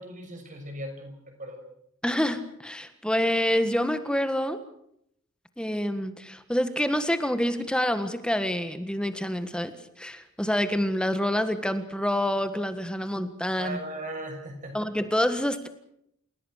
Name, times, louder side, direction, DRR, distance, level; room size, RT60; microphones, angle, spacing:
voice 1, 0.0-1.6 13.6-14.8, right 1 dB, 40° right, 4 dB, 6.5 m, -38 dB
voice 2, 2.0-4.6 5.6-9.7 10.0-13.8 14.7-15.7, left 1 dB, 5° left, 9 dB, 1.6 m, -27 dB
29.5 x 17.5 x 6.5 m, 0.73 s
head